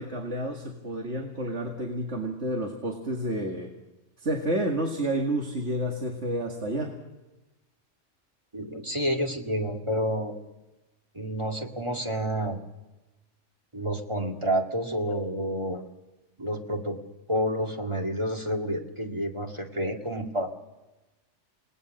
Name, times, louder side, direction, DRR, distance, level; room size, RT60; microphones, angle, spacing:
voice 1, 0.0-3.7 4.2-7.0, right 1 dB, 70° right, 1 dB, 2.4 m, -30 dB
voice 2, 8.5-10.3 11.1-12.6 13.7-15.8 16.4-17.0 17.3-20.5, equal, 25° right, 1 dB, 2.1 m, -29 dB
28.0 x 19.5 x 6.6 m, 1.1 s
omnidirectional pair, 1.2 m